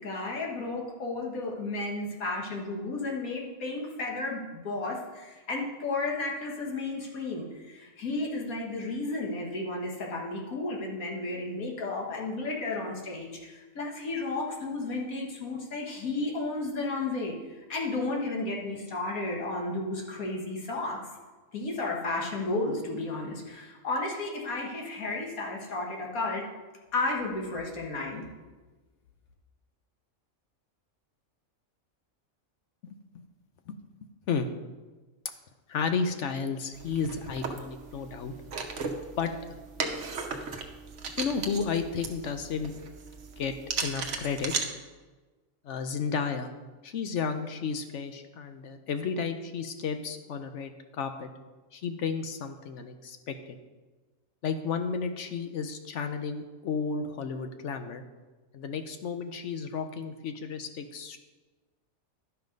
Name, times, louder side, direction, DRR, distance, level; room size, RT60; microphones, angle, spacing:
voice 1, 0.0-17.3 17.7-21.0 21.5-26.5 26.9-28.2, left 2 dB, 80° left, -1 dB, 1.9 m, -33 dB
voice 2, 32.8-33.2 33.7-33.8 34.3-34.5 35.7-38.3 39.2-39.3 41.2-42.7 43.4-43.5 43.8-44.5 45.6-46.5 46.8-51.3 51.7-53.6 54.4-58.0 58.5-61.2, left 5 dB, 65° left, 7 dB, 0.9 m, -32 dB
sound 1, 36.7-44.6, right 4 dB, 60° right, 1.2 m, -36 dB
11.5 x 5.6 x 5.2 m, 1.3 s
omnidirectional pair, 1.5 m